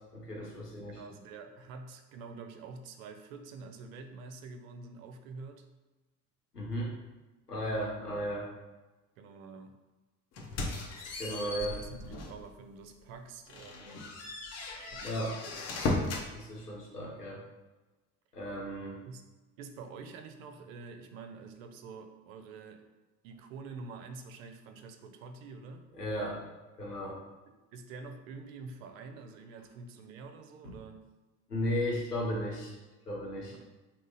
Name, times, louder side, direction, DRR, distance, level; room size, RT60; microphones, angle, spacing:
voice 1, 0.1-1.0 6.5-6.9 7.5-8.5 11.2-11.8 15.0-15.3 16.3-17.4 18.3-19.0 25.9-26.4 26.8-27.2 31.5-32.8 33.0-33.5, equal, 90° left, -4 dB, 0.9 m, -35 dB
voice 2, 0.9-5.7 7.5-8.1 9.2-9.7 11.3-14.1 14.8-15.4 19.1-19.2 19.6-22.8 23.2-25.9 27.7-31.1 33.6-33.7, right 4 dB, 60° right, 6 dB, 0.5 m, -47 dB
sound 1, 10.4-12.4 12.9-13.0 13.5-16.3, left 2 dB, 35° left, 0.7 m, -36 dB
3.7 x 2.0 x 3.9 m, 1.2 s
figure-of-eight pair, 60°, 46 cm